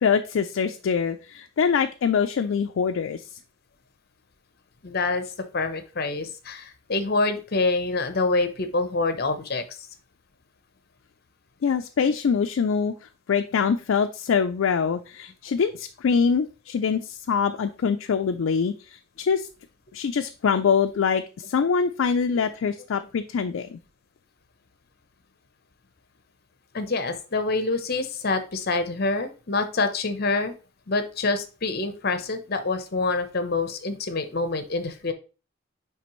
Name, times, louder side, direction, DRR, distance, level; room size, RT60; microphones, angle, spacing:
voice 1, 0.0-3.4 11.6-19.5 19.9-23.8, left 6 dB, 75° left, 6 dB, 0.4 m, -24 dB
voice 2, 4.8-5.2 5.5-9.8 26.7-30.5 30.9-35.1, left 3 dB, 50° left, 9 dB, 0.8 m, -26 dB
9.4 x 3.4 x 3.0 m, 0.33 s
head